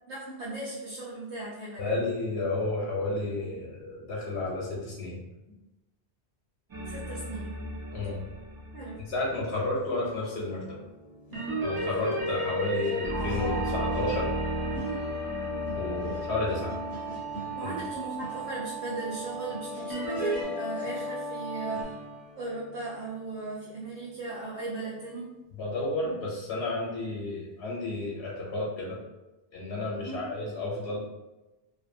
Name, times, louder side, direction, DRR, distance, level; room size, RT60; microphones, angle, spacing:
voice 1, 0.1-2.1 6.8-7.6 8.7-9.0 14.7-15.0 17.5-21.9 22.4-25.3 30.0-30.2, right 2 dB, 85° right, -8 dB, 1.0 m, -37 dB
voice 2, 1.8-5.2 7.9-8.2 9.1-10.6 11.6-14.3 15.8-16.7 17.6-17.7 25.6-29.0 29.5-31.0, left 2 dB, 85° left, -4 dB, 0.9 m, -31 dB
sound 1, 6.7-9.4 11.3-17.8 19.9-20.4, equal, 30° right, 0.4 m, -34 dB
Slide guitar testing, 10.4-25.6 26.0-26.3 26.5-26.8, right 1 dB, 25° left, 0.6 m, -46 dB
sound 2, 13.1-21.8, equal, 55° right, 1.2 m, -37 dB
2.5 x 2.1 x 2.5 m, 1.0 s
omnidirectional pair, 1.1 m